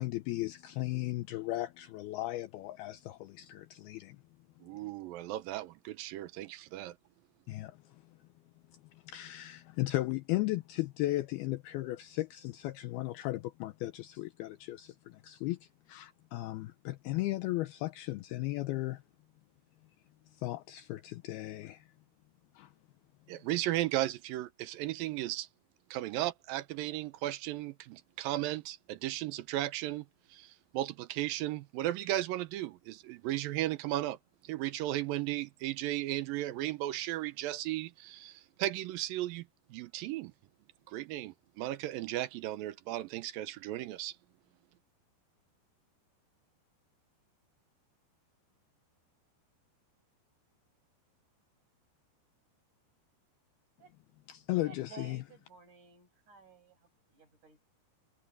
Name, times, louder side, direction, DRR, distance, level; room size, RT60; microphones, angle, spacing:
voice 1, 0.0-4.2 7.5-7.8 8.9-19.0 20.4-21.9 22.6-22.7 54.3-55.2, left 17 dB, 80° left, 2.4 m, -36 dB
voice 2, 4.6-6.9 23.3-25.5 25.9-30.1 30.3-34.2 34.4-39.4 39.7-40.3 40.9-44.2, right 15 dB, 75° right, 2.1 m, -35 dB
voice 3, 54.6-57.6, right 6 dB, 45° right, 8.7 m, -55 dB
omnidirectional pair, 4.9 m